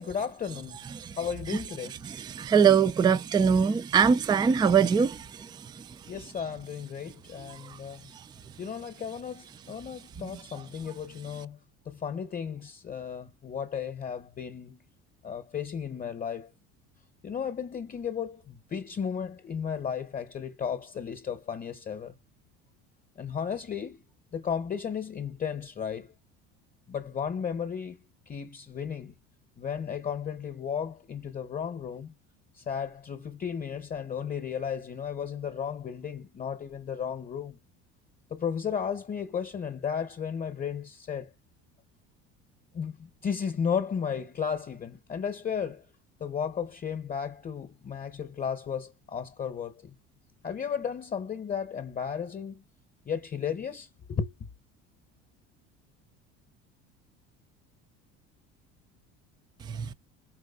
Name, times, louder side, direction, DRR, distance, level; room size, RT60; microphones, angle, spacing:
voice 1, 0.0-0.9 1.2-2.0 6.1-8.1 8.6-11.6 11.8-14.8 15.2-16.5 17.2-22.2 23.2-24.0 24.3-26.1 26.9-29.1 29.6-32.1 32.6-37.6 38.3-41.3 42.7-45.8 46.2-49.9 50.4-52.6 53.1-54.3, left 7 dB, 30° left, 0.9 m, -34 dB
voice 2, 2.2-5.5 5.8-5.9 59.7-59.9, right 6 dB, 15° right, 0.3 m, -22 dB
4.8 x 3.3 x 2.3 m
supercardioid pair, 90°, 32 cm